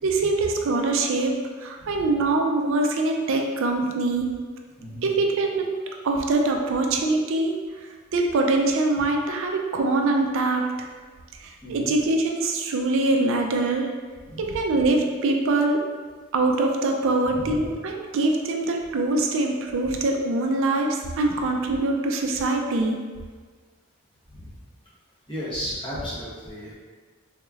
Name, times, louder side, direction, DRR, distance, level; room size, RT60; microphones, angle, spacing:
voice 1, 0.0-4.3 5.0-7.6 8.1-10.7 11.4-13.9 14.4-15.9 16.3-23.0, right 2 dB, 65° right, 2 dB, 0.4 m, -23 dB
voice 2, 4.8-5.1 11.6-11.9 14.2-14.6 17.4-17.7 24.3-24.6 25.3-26.7, equal, 25° left, -9 dB, 1.1 m, -34 dB
3.6 x 3.1 x 2.4 m, 1.5 s
head